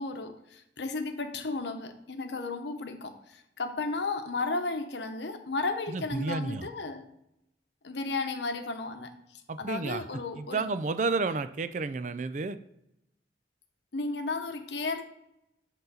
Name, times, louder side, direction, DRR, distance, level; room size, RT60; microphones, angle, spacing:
voice 1, 0.0-7.0 7.8-10.6 13.9-15.0, left 3 dB, 75° left, 7 dB, 0.9 m, -34 dB
voice 2, 5.9-6.7 9.5-10.0 10.3-12.6, right 3 dB, 40° right, 12 dB, 0.4 m, -31 dB
8.1 x 3.9 x 5.6 m, 0.83 s
head